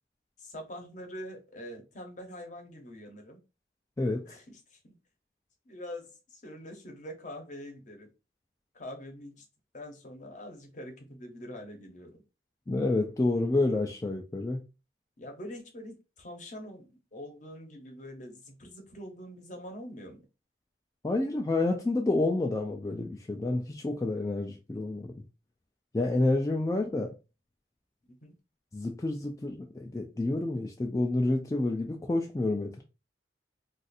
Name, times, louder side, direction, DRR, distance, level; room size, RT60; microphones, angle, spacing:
voice 1, 0.4-3.4 4.2-4.9 5.6-8.1 8.7-9.4 9.7-12.2 15.2-20.3 28.1-28.3, equal, 45° left, 0.8 m, -44 dB
voice 2, 4.0-4.4 12.7-14.6 21.0-25.1 25.9-27.1 28.7-32.8, left 2 dB, 20° left, 0.3 m, -29 dB
2.5 x 2.5 x 4.1 m
head